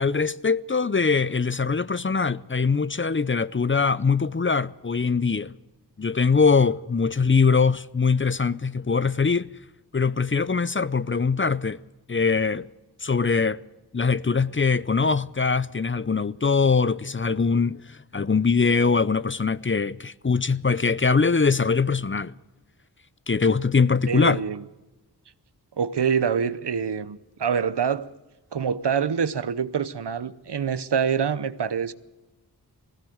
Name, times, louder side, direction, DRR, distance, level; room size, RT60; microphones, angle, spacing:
voice 1, 0.0-5.5 6.0-9.5 9.9-11.8 12.1-12.7 13.0-13.6 13.9-17.8 18.1-22.3 23.3-24.4, left 5 dB, 30° left, 0.6 m, -22 dB
voice 2, 24.1-24.6 25.8-28.1 28.5-31.9, right 7 dB, 85° right, 0.9 m, -25 dB
20.0 x 16.5 x 7.9 m
wide cardioid pair, 50°, 40 cm